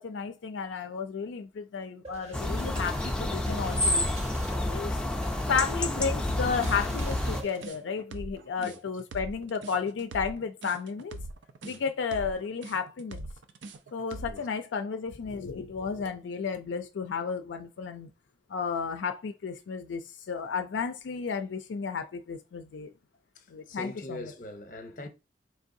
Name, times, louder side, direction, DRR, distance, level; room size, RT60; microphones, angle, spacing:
voice 1, 0.0-4.1 4.7-5.0 5.5-11.2 11.6-13.3 13.9-18.1 18.5-22.9 23.5-24.2, left 5 dB, 80° left, 0.4 m, -33 dB
sound 1, 2.0-7.7, equal, 35° right, 0.7 m, -43 dB
sound 2, 2.3-7.4, left 1 dB, 5° left, 0.4 m, -29 dB
sound 3, 6.6-14.5, right 2 dB, 85° right, 0.5 m, -42 dB
voice 2, 23.4-25.1, left 2 dB, 45° left, 0.7 m, -42 dB
4.6 x 3.2 x 2.6 m
head